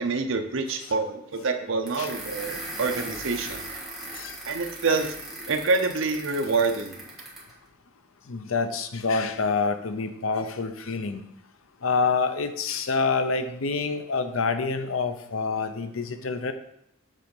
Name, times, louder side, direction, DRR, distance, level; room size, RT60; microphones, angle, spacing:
voice 1, 0.0-3.6 4.5-5.1 5.5-7.0, right 4 dB, 65° right, 6 dB, 0.8 m, -26 dB
sound 1, 1.9-7.5, right 1 dB, ahead, 1.7 m, -38 dB
voice 2, 8.3-11.2 11.8-16.5, left 4 dB, 80° left, 9 dB, 0.7 m, -27 dB
7.4 x 3.9 x 5.4 m, 0.77 s
head